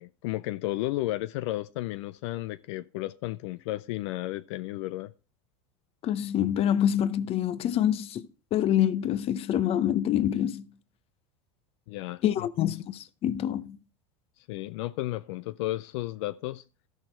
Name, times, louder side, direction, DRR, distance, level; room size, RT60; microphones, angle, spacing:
voice 1, 0.0-5.1 11.9-12.7 14.4-16.6, left 17 dB, 65° left, 0.4 m, -33 dB
voice 2, 6.0-10.7 12.2-13.8, left 10 dB, 40° left, 0.8 m, -26 dB
13.0 x 6.4 x 4.4 m
supercardioid pair, 115°, 16 cm